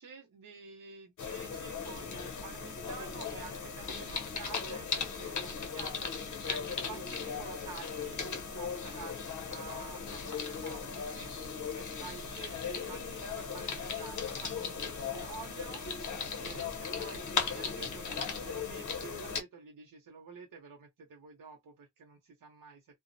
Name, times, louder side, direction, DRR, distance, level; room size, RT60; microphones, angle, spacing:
voice 1, 0.0-8.2 8.6-11.3 11.7-15.8 16.4-22.8, right 5 dB, 70° right, 0.8 m, -49 dB
sound 1, 1.2-19.4, left 5 dB, 60° left, 0.7 m, -37 dB
2.4 x 2.0 x 2.6 m
wide cardioid pair, 105°, 35 cm